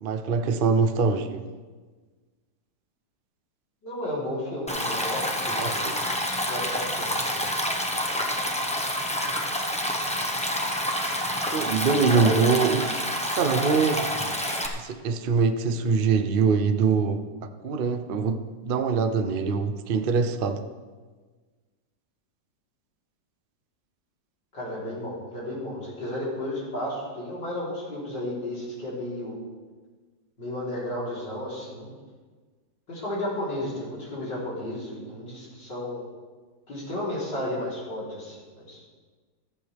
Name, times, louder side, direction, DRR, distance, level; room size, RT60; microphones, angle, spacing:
voice 1, 0.0-1.5 5.5-5.9 11.5-12.9 13.4-14.0 14.8-17.2 17.6-20.6, right 5 dB, 75° right, 8 dB, 0.5 m, -23 dB
voice 2, 3.8-6.0 6.5-7.4 12.1-12.5 24.5-29.4 30.4-31.9 32.9-36.0 36.7-38.8, left 1 dB, 75° left, -7 dB, 4.5 m, -33 dB
Stream, 4.7-14.7, equal, 5° left, 0.8 m, -28 dB
14.5 x 13.5 x 3.5 m, 1.4 s
omnidirectional pair, 2.0 m